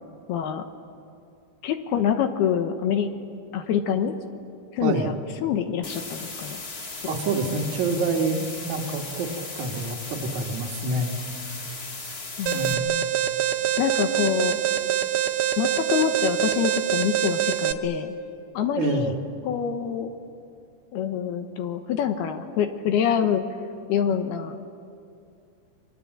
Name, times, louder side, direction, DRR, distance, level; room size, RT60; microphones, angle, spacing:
voice 1, 0.3-0.6 1.6-3.1 3.5-4.1 4.7-5.1 5.4-6.6 12.4-13.1 13.8-14.6 15.6-18.1 18.5-19.2 19.4-20.1 20.9-23.5 23.9-24.6, left 8 dB, 70° left, 7 dB, 2.8 m, -26 dB
voice 2, 4.8-5.1 7.1-9.3 9.6-11.1 11.4-11.6 12.5-12.9 18.8-19.1, right 3 dB, 55° right, -1 dB, 2.5 m, -27 dB
sound 1, 5.8-12.7, left 3 dB, 40° left, 1.3 m, -37 dB
Alarm, 12.5-17.7, right 11 dB, 75° right, 2.9 m, -25 dB
29.5 x 24.0 x 7.8 m, 2.5 s
omnidirectional pair, 5.1 m